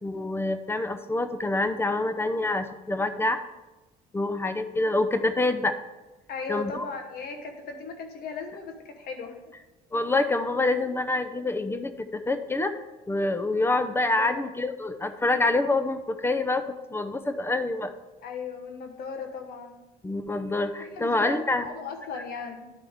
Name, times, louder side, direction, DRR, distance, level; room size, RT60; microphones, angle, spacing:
voice 1, 0.0-3.4 4.1-5.7 6.5-6.8 9.9-12.7 13.1-17.9 20.0-21.7, left 2 dB, 15° left, 10 dB, 0.5 m, -26 dB
voice 2, 6.3-9.4 14.2-14.4 18.2-19.8 20.8-22.7, left 5 dB, 65° left, 5 dB, 1.0 m, -37 dB
10.5 x 4.9 x 3.6 m, 1.1 s
cardioid pair, 110°, 17 cm